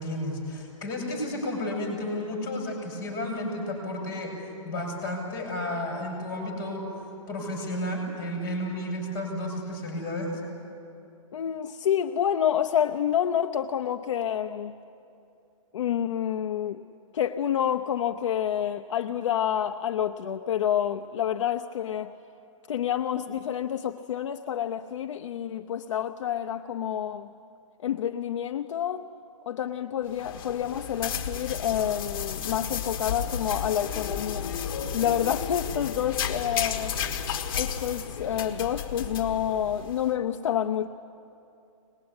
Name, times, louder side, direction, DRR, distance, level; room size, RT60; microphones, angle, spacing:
voice 1, 0.0-4.3 4.6-6.8 7.3-10.3, left 1 dB, 20° left, -1 dB, 6.3 m, -32 dB
voice 2, 11.3-14.8 15.7-16.9 17.1-22.1 22.7-27.3 27.8-29.1 29.5-34.6 34.9-37.0 37.6-40.9, left 9 dB, 60° left, 6 dB, 0.8 m, -28 dB
sound 1, 30.1-40.1, left 7 dB, 45° left, 1.7 m, -33 dB
23.5 x 20.0 x 9.7 m, 2.6 s
hypercardioid pair, 175°, 18 cm